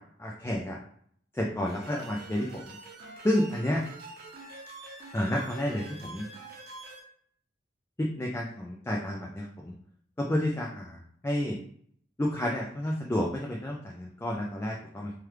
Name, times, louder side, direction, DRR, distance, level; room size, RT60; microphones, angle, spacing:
voice 1, 0.2-0.8 1.3-2.6 3.2-3.8 5.1-6.3 8.0-9.7 10.2-11.6 12.2-15.1, left 1 dB, 15° left, -2 dB, 0.3 m, -30 dB
sound 1, 1.7-7.0, right 2 dB, 55° right, 0.7 m, -46 dB
3.0 x 2.3 x 3.3 m, 0.64 s
head